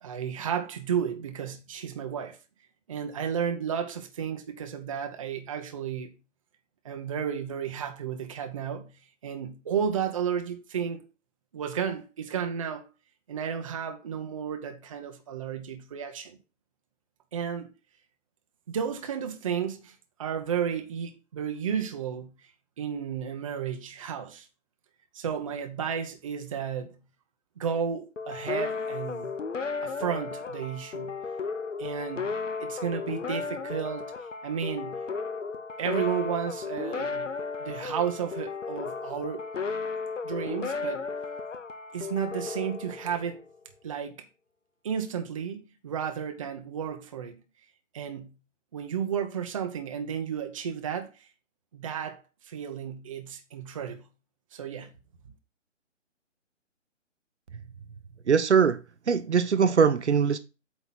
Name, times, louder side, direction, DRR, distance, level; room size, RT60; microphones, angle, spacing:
voice 1, 0.0-2.4 2.9-6.1 6.8-11.0 11.5-12.9 13.3-16.4 17.3-17.7 18.7-22.5 22.8-24.5 25.1-27.0 27.6-29.3 29.8-31.2 31.8-32.3 32.6-34.1 34.4-35.0 35.8-37.3 37.6-39.5 40.2-41.0 41.9-43.4 43.8-44.3 44.8-47.4 47.9-48.3 48.7-51.1 51.7-52.2 52.5-54.1 54.5-54.9, right 7 dB, 25° right, 0.7 m, -33 dB
sound 1, 28.2-43.5, left 4 dB, 75° left, 0.9 m, -34 dB
voice 2, 58.3-58.8 59.1-60.4, right 6 dB, 65° right, 0.7 m, -21 dB
8.2 x 3.0 x 5.7 m
figure-of-eight pair, 140°, 37 cm